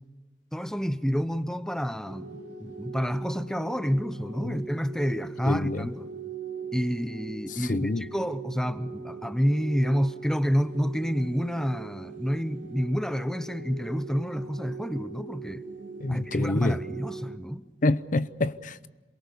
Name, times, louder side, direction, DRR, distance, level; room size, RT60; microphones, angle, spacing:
voice 1, 0.5-6.1 6.7-15.6 16.1-17.7, equal, 5° left, 0.7 m, -29 dB
sound 1, 2.0-17.4, right 5 dB, 85° right, 2.9 m, -41 dB
voice 2, 5.5-5.9 7.5-8.0 16.0-16.8 17.8-18.9, left 2 dB, 50° left, 0.7 m, -27 dB
27.5 x 23.0 x 6.9 m
head